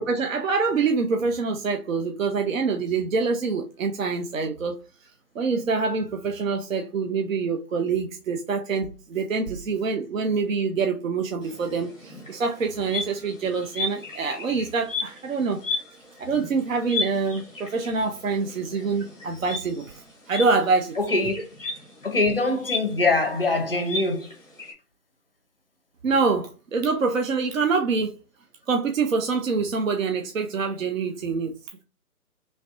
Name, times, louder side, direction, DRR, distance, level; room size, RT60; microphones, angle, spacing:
voice 1, 0.0-4.8 5.4-15.8 16.2-19.9 20.3-21.0 26.0-28.1 28.7-31.5, right 4 dB, 60° right, 0.6 m, -25 dB
sound 1, 11.4-24.7, left 3 dB, 5° right, 0.8 m, -35 dB
voice 2, 21.0-21.3 22.0-24.3, left 2 dB, 40° left, 0.5 m, -23 dB
3.1 x 2.4 x 2.8 m
figure-of-eight pair, 160°, 46 cm